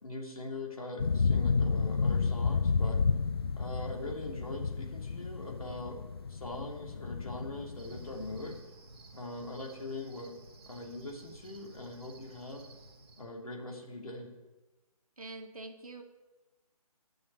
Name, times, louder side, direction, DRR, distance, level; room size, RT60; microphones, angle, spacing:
voice 1, 0.0-3.0 3.6-6.0 6.3-8.6 9.1-10.3 10.7-12.6 13.2-14.3, left 2 dB, 65° left, 0 dB, 2.8 m, -42 dB
sound 1, 1.0-8.6, left 5 dB, 40° left, 0.4 m, -31 dB
Cricket, 7.8-13.3, right 2 dB, 40° right, 2.1 m, -54 dB
voice 2, 15.2-16.0, right 2 dB, 65° right, 4 dB, 1.8 m, -45 dB
11.0 x 6.3 x 8.9 m, 1.1 s
figure-of-eight pair, 145°, 20 cm